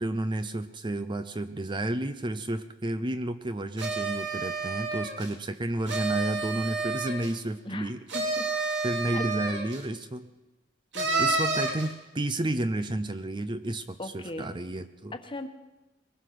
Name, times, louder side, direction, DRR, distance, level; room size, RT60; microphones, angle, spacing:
voice 1, 0.0-8.0 8.8-10.3 11.2-15.1, right 1 dB, 25° right, 10 dB, 0.6 m, -31 dB
sound 1, 3.8-5.3 5.9-7.4 8.1-9.8 10.9-11.9, right 3 dB, 65° right, 3.4 m, -30 dB
voice 2, 7.6-8.5 9.1-9.2 10.9-11.3 14.0-14.5 15.1-15.5, left 1 dB, 25° left, 7 dB, 1.4 m, -38 dB
22.0 x 19.5 x 6.0 m, 1.0 s
head